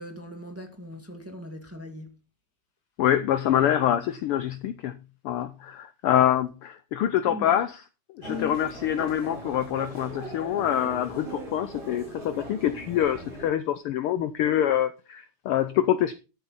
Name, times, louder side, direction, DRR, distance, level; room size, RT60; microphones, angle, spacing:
voice 1, 0.0-2.2 7.3-7.6 8.3-8.6, left 2 dB, 5° right, 1.2 m, -39 dB
voice 2, 3.0-5.0 5.2-7.8 8.1-16.1, left 11 dB, 85° left, 1.2 m, -25 dB
Human voice, 8.2-13.5, right 2 dB, 40° right, 5.3 m, -40 dB
13.0 x 8.5 x 4.1 m
omnidirectional pair, 3.3 m